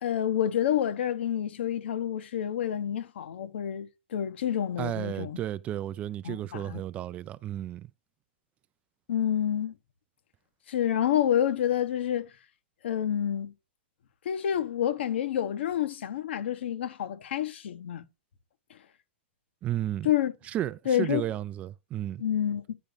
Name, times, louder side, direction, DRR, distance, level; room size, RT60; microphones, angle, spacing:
voice 1, 0.0-5.4 6.2-6.8 9.1-9.7 10.7-12.3 12.8-13.5 14.2-18.1 18.7-18.8 20.0-20.3 20.8-21.2 22.2-22.7, left 10 dB, 70° left, 1.3 m, -28 dB
voice 2, 4.8-7.9 19.6-20.1 20.5-22.2, right 12 dB, 20° right, 0.3 m, -33 dB
10.0 x 4.0 x 5.1 m
hypercardioid pair, 150°, 6 cm